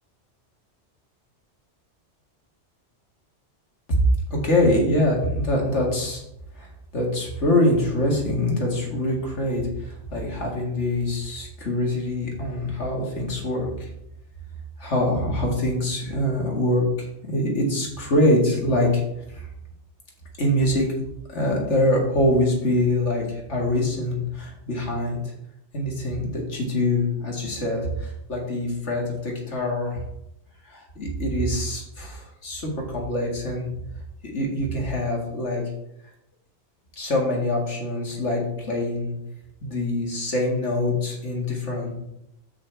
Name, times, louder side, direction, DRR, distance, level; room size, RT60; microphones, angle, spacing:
voice 1, 4.3-6.2 6.5-6.7 6.9-13.9 14.8-19.0 19.3-19.5 20.4-20.9 21.3-25.2 25.7-30.0 30.7-33.7 34.2-35.6 37.0-39.1 39.6-42.0, left 1 dB, 85° left, -1 dB, 2.3 m, -24 dB
8.8 x 7.7 x 3.4 m, 0.82 s
omnidirectional pair, 1.2 m